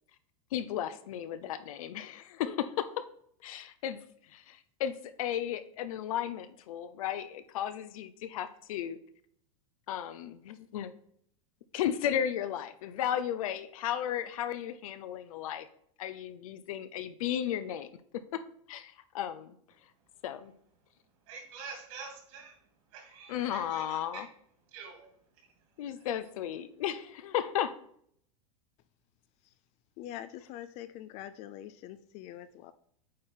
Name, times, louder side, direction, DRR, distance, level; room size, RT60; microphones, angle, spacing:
voice 1, 0.5-2.9 3.4-4.0 4.3-9.0 9.9-10.9 11.7-15.7 16.0-17.9 18.3-18.4 18.7-19.6 20.2-20.5 23.3-24.3 25.8-27.7, left 10 dB, 75° left, 12 dB, 0.6 m, -34 dB
voice 2, 21.2-22.6 22.9-24.2 24.7-25.6 25.8-26.0, right 5 dB, 60° right, 1 dB, 2.8 m, -47 dB
voice 3, 30.0-32.7, left 12 dB, 35° left, 14 dB, 0.4 m, -44 dB
8.5 x 3.6 x 4.4 m, 0.66 s
supercardioid pair, 135°, 18 cm